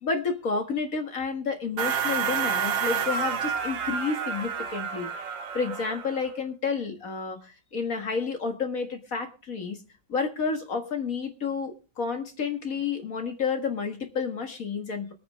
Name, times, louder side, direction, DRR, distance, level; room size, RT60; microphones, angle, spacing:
voice 1, 0.0-9.8 10.1-15.1, left 5 dB, 50° left, 5 dB, 2.0 m, -30 dB
sound 1, 1.8-6.3, right 7 dB, 75° right, 1.9 m, -29 dB
22.5 x 9.2 x 3.2 m, 0.35 s
omnidirectional pair, 2.0 m